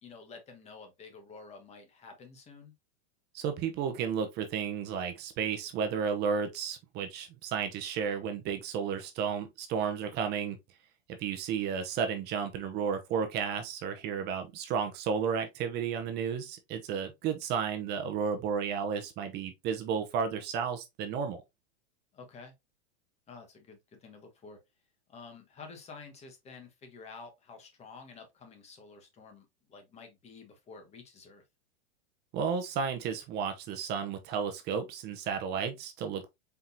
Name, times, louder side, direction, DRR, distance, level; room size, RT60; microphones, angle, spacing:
voice 1, 0.0-2.7 11.7-11.8 22.1-22.5 23.3-24.6 25.1-31.4, left 4 dB, 20° left, 1.3 m, -50 dB
voice 2, 3.3-10.6 11.1-21.4 32.3-36.3, right 6 dB, 30° right, 0.7 m, -33 dB
4.5 x 3.6 x 2.6 m
supercardioid pair, 140°, 32 cm